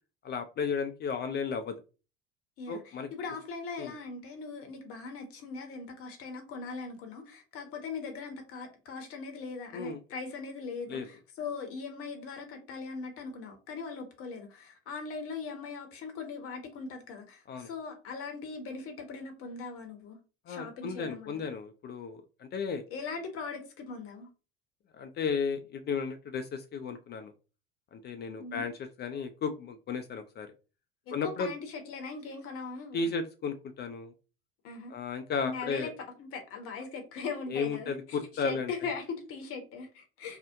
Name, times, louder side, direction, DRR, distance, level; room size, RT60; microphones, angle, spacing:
voice 1, 0.2-1.7 2.7-3.1 3.8-3.9 9.7-10.0 10.9-11.1 17.5-17.7 20.5-22.8 24.9-27.3 27.9-30.5 31.1-31.5 32.9-34.1 34.9-35.9 37.5-38.7, left 5 dB, 35° left, 0.4 m, -34 dB
voice 2, 2.6-20.2 20.5-21.4 22.9-24.3 28.4-28.6 31.1-33.1 34.6-34.9 35.4-35.9 36.2-40.4, left 4 dB, 50° left, 0.8 m, -40 dB
2.7 x 2.1 x 3.5 m
hypercardioid pair, 60°, 29 cm